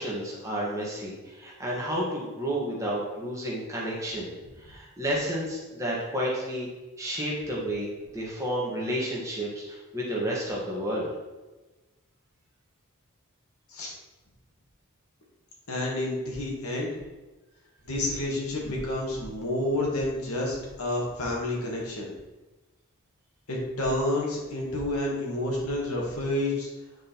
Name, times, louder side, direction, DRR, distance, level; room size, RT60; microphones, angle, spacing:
voice 1, 0.0-4.3 4.6-6.7 7.0-7.9 8.1-11.1, equal, 15° right, -5 dB, 1.8 m, -31 dB
voice 2, 15.7-16.9 17.8-22.1 23.5-26.7, left 1 dB, 85° left, -2 dB, 2.3 m, -29 dB
9.2 x 5.1 x 4.4 m, 1.1 s
head